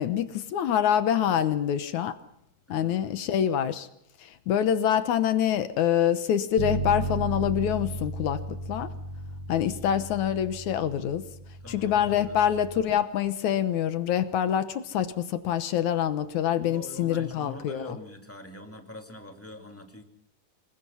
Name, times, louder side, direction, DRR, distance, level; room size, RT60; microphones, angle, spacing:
voice 1, 0.0-2.1 2.7-3.9 4.2-8.9 9.5-11.2 11.7-17.8, left 9 dB, 70° left, 11 dB, 2.2 m, -26 dB
voice 2, 2.7-3.2 9.7-10.1 11.6-12.4 16.6-20.0, left 2 dB, 5° left, 4 dB, 1.9 m, -44 dB
Bass guitar, 6.6-12.8, right 2 dB, 60° right, 2.7 m, -35 dB
27.0 x 21.5 x 5.6 m, 0.76 s
omnidirectional pair, 3.9 m